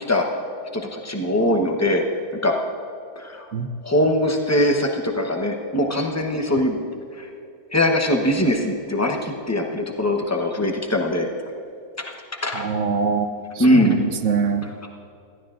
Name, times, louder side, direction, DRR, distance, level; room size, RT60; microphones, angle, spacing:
voice 1, 0.7-2.0 2.4-2.5 3.2-3.5 3.8-6.8 7.1-7.3 7.7-11.3 12.4-12.7 13.6-14.0, left 1 dB, 15° left, 1 dB, 0.6 m, -21 dB
voice 2, 12.5-13.3 13.5-14.7, right 5 dB, 60° right, 7 dB, 0.8 m, -23 dB
20.5 x 15.0 x 2.5 m, 2.3 s
omnidirectional pair, 2.0 m